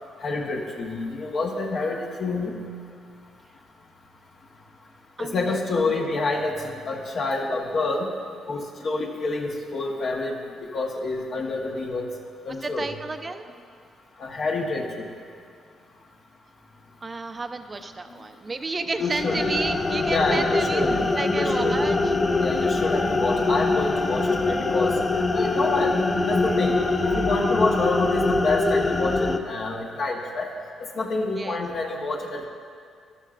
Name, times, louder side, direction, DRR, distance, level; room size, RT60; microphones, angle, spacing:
voice 1, 0.2-2.6 5.2-8.1 8.5-10.4 10.7-12.1 12.4-12.9 14.2-15.0 19.0-19.4 20.1-21.0 21.3-21.7 22.4-24.9 25.3-25.9 26.2-30.5 30.9-32.5, left 3 dB, 55° left, -1 dB, 1.3 m, -27 dB
voice 2, 5.2-6.1 12.6-13.5 17.0-20.8 21.1-22.5 31.4-31.6, right 3 dB, 30° right, 8 dB, 0.6 m, -32 dB
sound 1, 19.0-29.4, left 3 dB, 25° left, 0.6 m, -23 dB
Wind instrument woodwind instrument, 19.4-28.4, left 3 dB, 80° left, 2.0 m, -39 dB
13.0 x 12.5 x 2.5 m, 2.2 s
cardioid pair, 90°, 0 cm